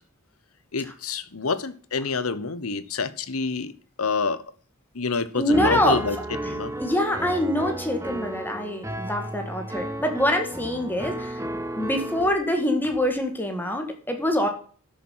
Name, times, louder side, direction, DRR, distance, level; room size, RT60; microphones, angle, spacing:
voice 1, 0.7-3.7 4.0-4.4 4.9-6.2 6.5-6.7, left 4 dB, 90° left, 1.1 m, -27 dB
voice 2, 5.3-6.0 6.8-11.4 11.7-14.5, left 1 dB, 10° left, 2.0 m, -25 dB
Piano, 5.5-12.3, right 1 dB, 15° right, 1.6 m, -33 dB
12.0 x 6.9 x 5.6 m
head